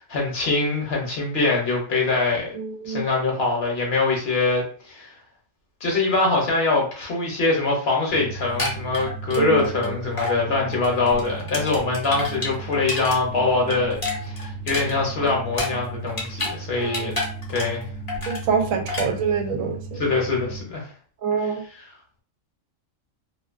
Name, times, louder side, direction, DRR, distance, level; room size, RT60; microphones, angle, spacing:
voice 1, 0.0-2.5 2.8-5.1 5.8-14.0 14.2-17.1 17.5-17.9 20.0-20.9, left 3 dB, 55° left, -1 dB, 0.9 m, -23 dB
voice 2, 2.5-3.1 9.4-10.0 16.8-17.1 18.3-20.0 21.2-21.6, right 6 dB, 85° right, 4 dB, 1.0 m, -25 dB
sound 1, 8.1-20.6, right 3 dB, 45° right, 0.8 m, -36 dB
sound 2, 8.4-9.9 10.2-10.4 10.7-13.2 13.5-16.6 16.8-17.8 18.1-18.4 18.9-19.1, left 2 dB, 30° left, 0.7 m, -29 dB
2.5 x 2.3 x 2.3 m, 0.43 s
omnidirectional pair, 1.4 m